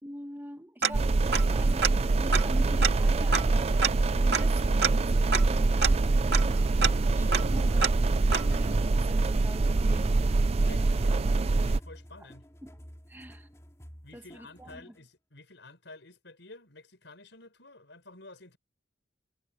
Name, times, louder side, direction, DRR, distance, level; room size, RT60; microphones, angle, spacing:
voice 1, 0.0-3.8 4.2-8.0 8.4-10.3 10.6-11.2 12.2-12.3 12.6-12.7 13.1-13.5 14.1-14.9, equal, 10° right, 1.7 m, -45 dB
Tick-tock, 0.8-1.6 1.8-1.9 2.3-8.8, right 6 dB, 65° right, 2.4 m, -30 dB
sound 1, 0.9-11.8, right 3 dB, 35° right, 0.4 m, -25 dB
sound 2, 6.8-15.0, equal, 15° left, 2.9 m, -51 dB
voice 2, 10.7-11.3 11.6-12.5 14.0-18.6, left 2 dB, 75° left, 5.5 m, -51 dB
head